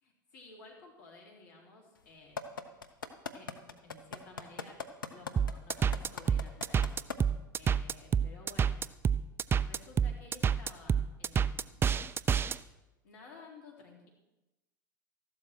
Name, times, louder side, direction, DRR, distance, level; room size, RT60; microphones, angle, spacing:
voice 1, 0.0-2.4 3.3-4.8 5.1-7.0 7.6-8.8 9.6-12.0 13.0-14.1, left 3 dB, 60° left, -1 dB, 3.8 m, -54 dB
sound 1, 2.4-7.2 7.7-7.8, left 5 dB, 80° left, 0.9 m, -38 dB
sound 2, 5.4-12.6, right 7 dB, 20° right, 0.4 m, -28 dB
14.5 x 12.0 x 4.5 m, 1.0 s
figure-of-eight pair, 80°, 11 cm